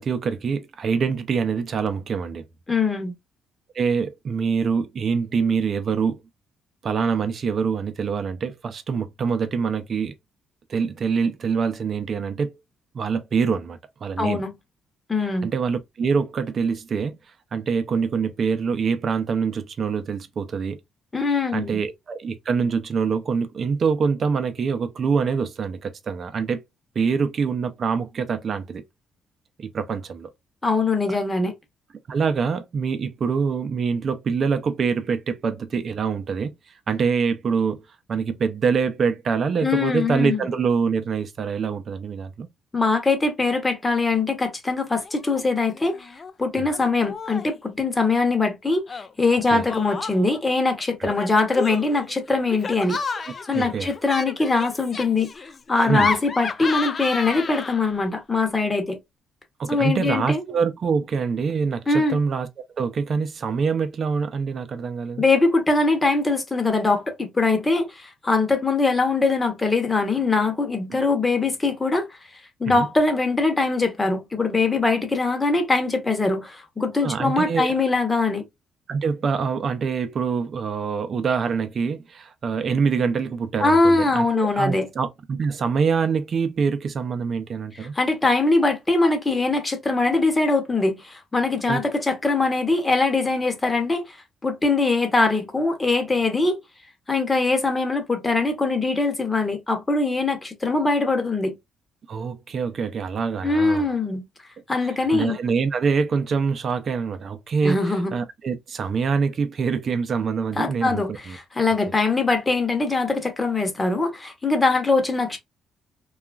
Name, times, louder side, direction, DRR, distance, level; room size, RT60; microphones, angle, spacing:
voice 1, 0.0-2.4 3.7-6.2 6.8-10.1 10.7-12.5 12.9-14.4 15.2-17.2 17.5-20.8 21.5-26.6 27.0-28.8 29.6-30.3 32.1-36.5 36.9-37.8 38.1-42.5 46.6-46.7 49.5-49.7 51.0-51.1 53.5-53.9 55.9-56.1 59.6-62.5 62.8-65.2 70.9-71.0 72.6-72.9 77.0-77.7 78.9-87.9 91.7-91.8 102.1-103.9 104.8-107.8 108.1-111.4, right 5 dB, 50° right, 0.5 m, -25 dB
voice 2, 2.7-3.1 14.2-14.5 15.1-15.5 21.1-21.8 30.6-31.5 39.6-40.5 42.7-46.1 46.4-53.0 53.5-59.0 59.7-60.4 61.9-62.2 65.2-72.1 72.6-78.4 83.6-84.9 87.9-94.2 94.4-96.6 97.1-101.5 103.4-104.2 104.7-105.4 107.6-108.1 110.6-115.4, left 3 dB, 20° left, 0.9 m, -22 dB
Laughter, 45.0-45.4 45.7-46.3 46.7-47.6 48.9-50.4 51.1-58.0, left 5 dB, 40° left, 0.3 m, -32 dB
2.8 x 2.4 x 2.3 m
cardioid pair, 90°, 0 cm